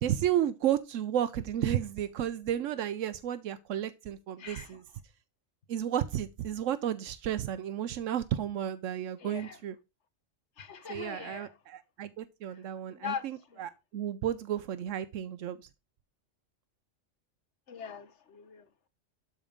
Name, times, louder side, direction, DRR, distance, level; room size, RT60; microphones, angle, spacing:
voice 1, 0.0-4.8 5.7-9.7 10.9-15.7, right 10 dB, 85° right, 1.0 m, -32 dB
voice 2, 4.4-4.8 9.2-9.6 10.6-11.5 12.5-12.6 12.9-13.6 17.7-18.7, left 8 dB, 65° left, 1.4 m, -41 dB
12.5 x 4.4 x 5.1 m
omnidirectional pair, 1.3 m